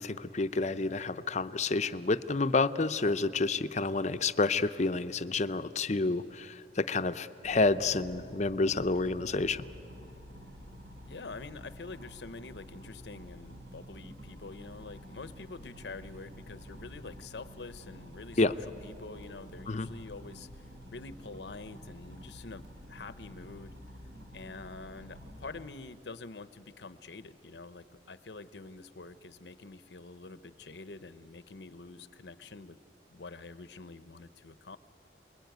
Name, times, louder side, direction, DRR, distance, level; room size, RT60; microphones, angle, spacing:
voice 1, 0.0-9.7 18.4-18.5 19.7-19.9, left 3 dB, 40° left, 12 dB, 0.7 m, -29 dB
sound 1, 7.4-25.6, equal, 70° right, 5.2 m, -49 dB
voice 2, 11.1-18.6 18.8-23.7 24.3-32.8 33.1-34.8, left 3 dB, 75° left, 13 dB, 0.8 m, -46 dB
28.0 x 21.0 x 9.3 m, 2.9 s
head